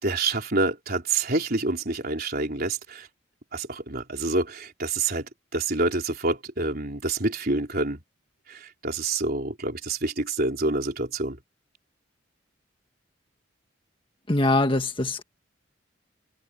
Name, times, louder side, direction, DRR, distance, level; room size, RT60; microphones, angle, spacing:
voice 1, 0.0-3.1 3.5-5.3 5.5-8.0 8.5-11.4, right 2 dB, 50° right, 4.2 m, -27 dB
voice 2, 14.3-15.2, left 2 dB, 25° left, 1.6 m, -23 dB
head